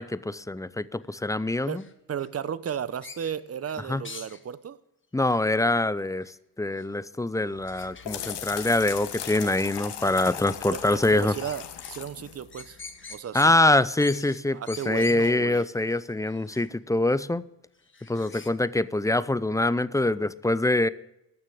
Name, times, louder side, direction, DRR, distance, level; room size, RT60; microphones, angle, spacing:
voice 1, 0.0-1.8 3.9-4.0 5.1-11.3 13.3-17.4 18.1-20.9, left 2 dB, 10° left, 17 dB, 0.5 m, -24 dB
sound 1, 1.0-2.3 2.7-4.4 5.2-5.7 6.2-6.3 6.7-6.9 7.6-8.6 8.8-10.4 10.9-12.0 12.3-16.7 17.1-17.3 17.7-18.5, left 4 dB, 30° left, 1.6 m, -46 dB
voice 2, 2.1-4.8 10.7-12.8 13.1-13.6 14.5-15.6, right 8 dB, 35° right, 17 dB, 0.8 m, -34 dB
sound 2, 7.6-13.1, left 9 dB, 75° left, 1.7 m, -38 dB
13.0 x 6.5 x 8.6 m, 0.87 s
supercardioid pair, 65°, 42 cm